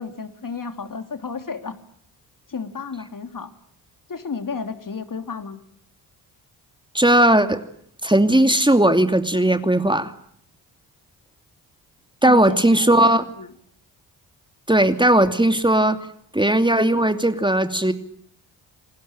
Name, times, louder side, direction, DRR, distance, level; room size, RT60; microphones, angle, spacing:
voice 1, 0.0-1.8 2.5-3.5 4.1-5.6 12.2-13.5, left 5 dB, 40° left, 8 dB, 3.4 m, -32 dB
voice 2, 6.9-7.6 8.0-10.1 12.2-13.2 14.7-16.0 16.3-17.9, right 1 dB, 10° right, 8 dB, 2.7 m, -17 dB
29.5 x 20.5 x 9.1 m, 0.66 s
supercardioid pair, 50°, 47 cm